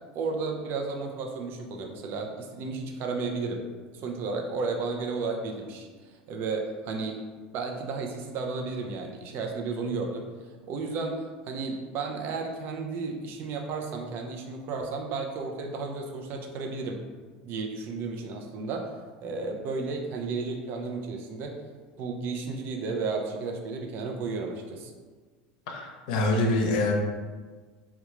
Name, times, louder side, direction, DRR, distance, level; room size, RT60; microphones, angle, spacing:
voice 1, 0.1-3.7 3.9-7.2 7.5-10.3 10.7-17.0 17.4-18.9 19.2-21.5 22.0-24.9, right 4 dB, 55° right, 2 dB, 0.5 m, -33 dB
voice 2, 25.7-26.9, left 2 dB, 70° left, 2 dB, 0.6 m, -25 dB
3.6 x 2.3 x 2.9 m, 1.4 s
hypercardioid pair, 95°, 4 cm